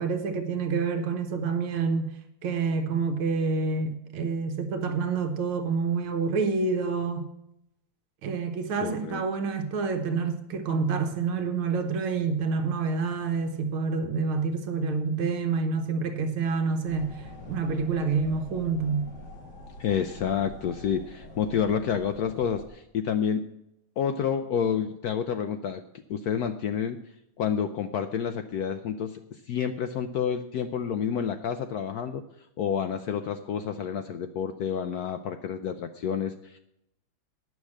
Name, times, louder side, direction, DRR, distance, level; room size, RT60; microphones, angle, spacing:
voice 1, 0.0-2.1 2.4-7.3 8.2-19.1, right 4 dB, 90° right, 1.8 m, -28 dB
voice 2, 8.8-9.2 19.8-23.5 24.0-25.8 26.1-27.0 27.4-32.2 32.6-36.6, left 8 dB, 80° left, 0.8 m, -29 dB
sound 1, 16.8-22.7, left 1 dB, 55° left, 2.5 m, -45 dB
9.5 x 6.5 x 8.5 m
omnidirectional pair, 2.2 m